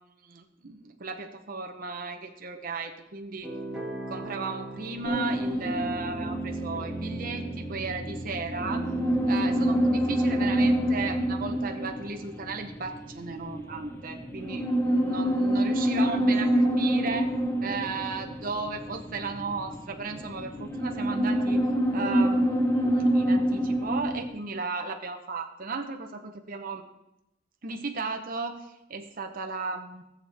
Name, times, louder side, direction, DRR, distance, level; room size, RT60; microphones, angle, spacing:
voice 1, 0.0-3.5 4.1-8.9 9.3-17.3 17.6-21.6 21.9-26.8 27.6-30.0, right 4 dB, 45° right, 4 dB, 0.8 m, -35 dB
sound 1, 3.4-11.4, right 2 dB, 5° right, 2.1 m, -37 dB
sound 2, 5.0-24.3, equal, 15° left, 1.0 m, -26 dB
16.5 x 7.3 x 3.4 m, 0.89 s
head